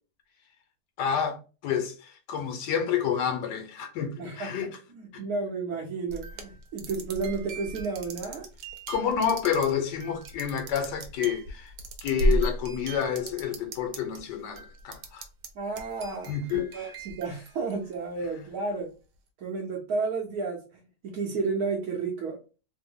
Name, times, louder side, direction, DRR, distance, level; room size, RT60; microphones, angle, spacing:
voice 1, 1.0-4.7 5.1-5.2 8.9-11.7 12.0-15.2 16.3-16.9, left 8 dB, 85° left, 1.3 m, -29 dB
voice 2, 4.2-8.5 15.5-18.9 19.4-22.4, right 4 dB, 65° right, 1.2 m, -32 dB
sound 1, 6.1-14.2 14.5-15.5 15.8-18.2, right 1 dB, 85° right, 1.3 m, -34 dB
3.3 x 2.1 x 3.6 m
omnidirectional pair, 1.8 m